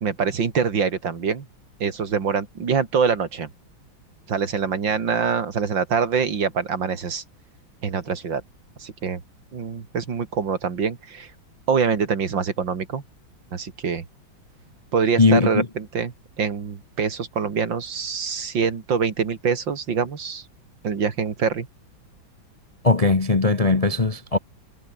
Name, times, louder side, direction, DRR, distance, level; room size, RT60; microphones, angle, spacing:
voice 1, 0.0-1.5 1.8-3.5 4.3-7.2 7.8-8.4 8.8-9.2 9.5-11.3 11.7-13.0 13.5-14.0 14.9-20.4 20.8-21.7, right 6 dB, 65° right, 3.0 m, -24 dB
voice 2, 15.2-15.7 22.8-24.4, left 3 dB, 25° left, 0.8 m, -19 dB
omnidirectional pair, 2.2 m